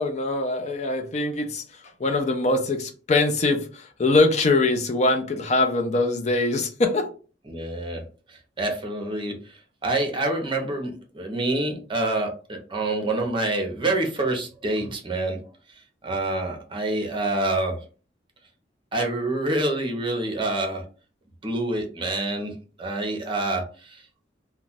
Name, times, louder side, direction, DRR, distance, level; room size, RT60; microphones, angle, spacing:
voice 1, 0.0-7.1, left 2 dB, 40° left, 0.5 m, -23 dB
voice 2, 7.5-8.0 8.3-15.4 16.0-17.8 18.9-20.8 21.4-22.5 22.8-24.0, right 2 dB, 30° right, 0.8 m, -27 dB
2.4 x 2.2 x 4.0 m
head